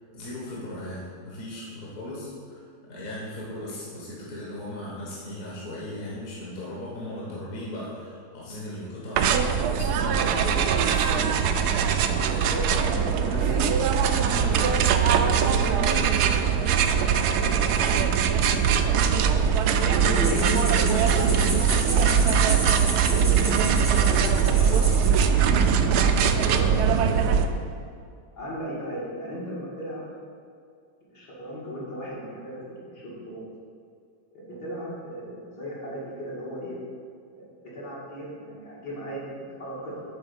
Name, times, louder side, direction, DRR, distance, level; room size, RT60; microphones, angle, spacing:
voice 1, 0.1-9.4 9.7-11.4 12.3-15.0, left 1 dB, 55° left, -6 dB, 1.8 m, -37 dB
sound 1, 9.2-27.5, right 7 dB, 75° right, 1.1 m, -21 dB
voice 2, 12.2-13.6 15.4-17.6 18.3-19.6 19.9-22.4 23.1-25.0 25.5-27.2 28.3-30.1 31.1-33.4 34.3-36.8 37.4-37.5 37.7-40.0, equal, 70° left, -7 dB, 2.8 m, -35 dB
sound 2, 20.1-25.3, right 1 dB, 15° right, 0.7 m, -32 dB
8.7 x 3.9 x 6.9 m, 2.3 s
omnidirectional pair, 1.8 m